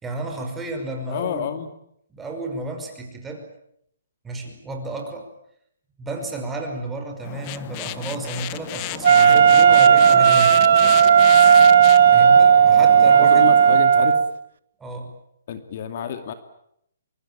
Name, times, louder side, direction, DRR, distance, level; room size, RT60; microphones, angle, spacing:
voice 1, 0.0-1.5 2.1-3.4 4.2-5.3 6.0-10.6 12.1-13.5 14.8-15.1, right 2 dB, 10° right, 3 dB, 5.4 m, -32 dB
voice 2, 1.1-1.7 12.7-14.1 15.5-16.3, left 9 dB, 45° left, 8 dB, 2.5 m, -29 dB
sound 1, 7.2-13.8, left 17 dB, 30° left, 1.2 m, -33 dB
Wind instrument woodwind instrument, 9.0-14.3, right 8 dB, 65° right, 1.1 m, -13 dB
24.0 x 24.0 x 8.9 m, 0.74 s
hypercardioid pair, 155°, 0 cm